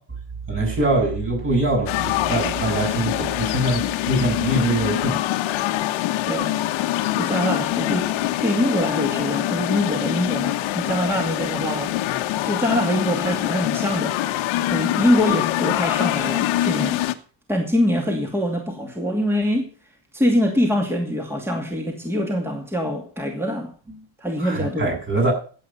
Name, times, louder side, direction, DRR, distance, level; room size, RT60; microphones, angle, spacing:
voice 1, 0.5-5.2 24.4-25.3, right 2 dB, 25° right, 7.9 m, -23 dB
sound 1, 1.9-17.1, left 14 dB, 90° left, 1.4 m, -24 dB
voice 2, 7.2-8.1 8.4-11.9 12.4-14.2 14.7-17.0 17.5-19.7 20.1-23.7 24.2-24.9, equal, 5° right, 2.5 m, -23 dB
15.0 x 8.5 x 5.8 m
cardioid pair, 130°, 46 cm